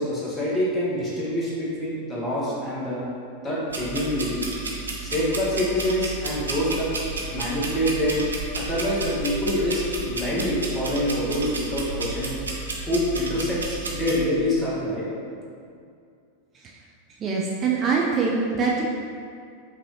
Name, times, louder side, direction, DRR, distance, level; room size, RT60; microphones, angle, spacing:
voice 1, 0.0-3.0 3.4-4.5 5.0-6.9 7.3-8.2 8.5-12.4 12.9-15.1, left 1 dB, 20° left, -7 dB, 1.3 m, -26 dB
sound 1, 3.7-14.2, right 3 dB, 75° right, 0.6 m, -32 dB
voice 2, 17.2-18.8, right 5 dB, 25° right, -3 dB, 0.4 m, -23 dB
5.2 x 2.7 x 3.1 m, 2.3 s
figure-of-eight pair, 90°, 0 cm